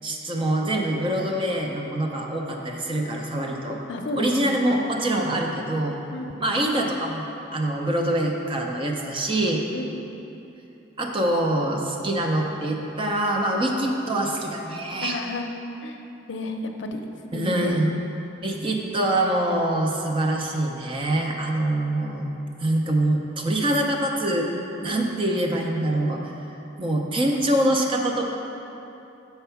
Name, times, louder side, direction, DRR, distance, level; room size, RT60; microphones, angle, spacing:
voice 1, 0.0-3.8 4.2-5.9 6.4-7.3 7.5-9.6 11.0-15.2 17.3-17.9 18.4-22.3 22.6-24.5 24.8-26.3 26.8-28.3, right 1 dB, 25° right, 1 dB, 0.6 m, -24 dB
voice 2, 3.9-4.5 6.1-6.6 9.7-10.2 15.0-15.5 15.8-16.0 16.3-17.0 17.3-17.8, left 2 dB, 75° left, 4 dB, 0.5 m, -32 dB
6.9 x 4.5 x 5.7 m, 2.9 s
head